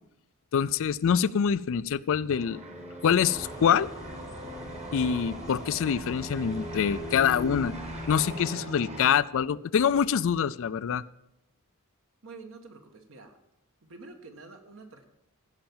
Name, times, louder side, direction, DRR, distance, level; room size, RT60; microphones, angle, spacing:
voice 1, 0.5-2.6 3.0-3.9 4.9-7.8 8.1-11.0, left 7 dB, 60° left, 17 dB, 0.4 m, -25 dB
sound 1, 2.3-9.0, right 1 dB, 30° right, 1.5 m, -39 dB
sound 2, 3.3-8.5, left 1 dB, 15° left, 0.7 m, -45 dB
voice 2, 12.2-13.4 13.8-15.1, right 3 dB, 60° right, 5 dB, 1.6 m, -47 dB
16.0 x 5.8 x 7.2 m, 0.90 s
head